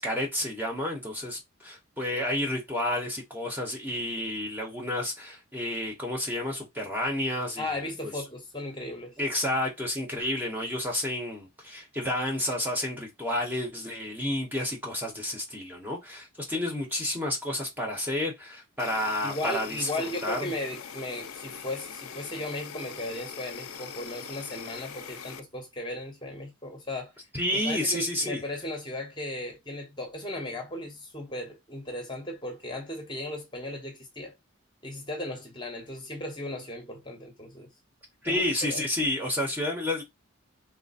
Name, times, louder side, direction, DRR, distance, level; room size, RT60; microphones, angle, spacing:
voice 1, 0.0-7.7 9.2-19.9 20.2-20.5 27.3-28.4 38.2-40.0, left 1 dB, 10° right, 0.9 m, -30 dB
voice 2, 7.6-9.1 19.2-27.1 27.6-34.3 34.8-37.7 38.3-38.8, left 1 dB, 20° left, 0.9 m, -36 dB
Insect, 18.8-25.4, left 7 dB, 90° left, 0.5 m, -42 dB
3.3 x 2.1 x 4.0 m
head